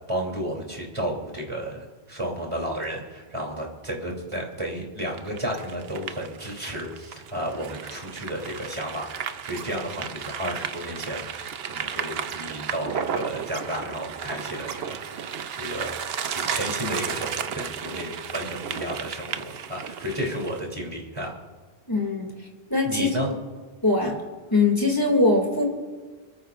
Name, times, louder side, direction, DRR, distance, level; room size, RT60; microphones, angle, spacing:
voice 1, 0.1-16.0 16.3-21.4 22.8-23.3, equal, 30° right, -1 dB, 3.1 m, -32 dB
sound 1, 5.1-20.6, right 7 dB, 75° right, 0.9 m, -34 dB
voice 2, 21.9-23.3 23.8-24.1 24.5-25.6, left 2 dB, 20° left, 1 dB, 2.5 m, -22 dB
27.5 x 14.0 x 2.5 m, 1.4 s
omnidirectional pair, 1.0 m